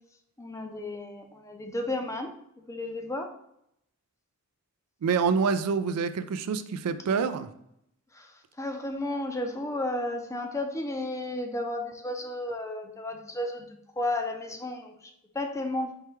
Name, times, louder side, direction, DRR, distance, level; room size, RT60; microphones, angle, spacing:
voice 1, 0.4-2.4 2.7-3.3 8.1-15.9, left 1 dB, 15° left, 5 dB, 0.4 m, -33 dB
voice 2, 5.0-7.5, right 5 dB, 90° right, 11 dB, 0.4 m, -26 dB
4.7 x 3.3 x 3.1 m, 0.76 s
head